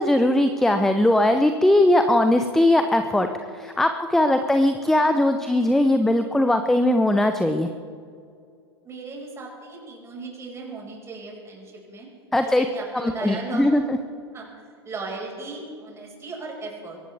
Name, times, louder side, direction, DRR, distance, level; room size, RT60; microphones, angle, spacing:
voice 1, 0.0-7.7 12.3-12.7 12.9-14.0, left 1 dB, ahead, 7 dB, 0.7 m, -20 dB
voice 2, 8.8-12.1 12.6-13.7 14.3-14.5 14.8-17.0, right 3 dB, 20° right, -1 dB, 5.6 m, -37 dB
23.0 x 17.5 x 3.5 m, 2.3 s
figure-of-eight pair, 95°, 14 cm